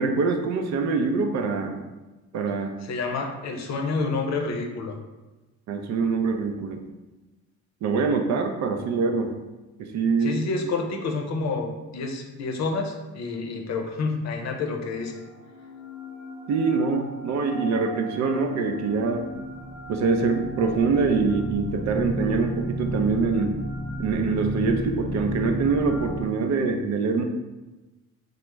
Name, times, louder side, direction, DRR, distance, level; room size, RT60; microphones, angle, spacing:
voice 1, 0.0-1.8 2.3-2.7 5.7-6.8 7.8-9.3 9.8-10.4 16.5-19.3 19.9-23.6 24.0-27.2, right 4 dB, 65° right, 5 dB, 0.5 m, -24 dB
voice 2, 2.8-5.0 10.2-15.2, left 3 dB, 60° left, 3 dB, 0.6 m, -29 dB
sound 1, 14.9-26.2, right 1 dB, 5° right, 0.7 m, -34 dB
3.0 x 2.0 x 3.3 m, 1.1 s
cardioid pair, 90°, 30 cm